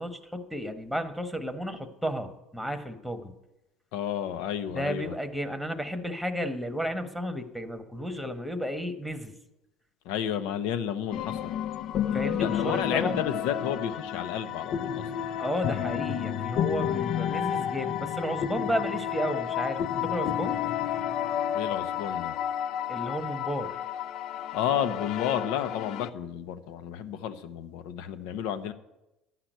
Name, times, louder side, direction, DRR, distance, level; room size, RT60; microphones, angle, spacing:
voice 1, 0.0-3.3 4.7-9.3 12.1-13.2 15.4-20.6 22.9-23.8, equal, ahead, 7 dB, 1.1 m, -33 dB
voice 2, 3.9-5.2 10.0-11.5 12.4-15.3 21.5-22.3 24.5-28.7, left 9 dB, 80° left, 12 dB, 0.8 m, -31 dB
sound 1, 11.1-26.1, left 10 dB, 60° left, 0.4 m, -31 dB
12.0 x 5.9 x 9.2 m, 0.96 s
supercardioid pair, 105°, 0 cm